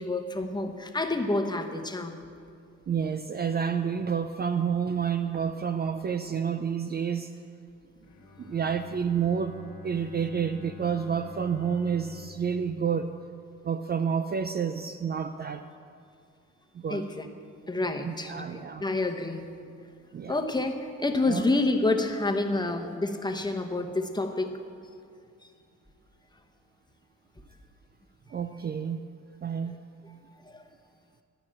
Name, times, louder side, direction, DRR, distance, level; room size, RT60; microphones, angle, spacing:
voice 1, 0.0-2.2 16.9-17.3 17.7-19.5 20.3-24.5 30.5-30.6, left 2 dB, 15° left, 4 dB, 1.0 m, -28 dB
voice 2, 2.9-7.3 8.4-9.6 9.8-13.1 13.6-15.7 16.7-17.1 18.0-18.8 20.1-20.4 21.3-21.4 28.3-29.0 29.4-29.7, right 7 dB, 35° right, 9 dB, 0.5 m, -29 dB
Bowed string instrument, 8.0-13.9, left 6 dB, 65° left, 1.5 m, -48 dB
12.5 x 6.0 x 8.7 m, 2.3 s
cardioid pair, 90°, 30 cm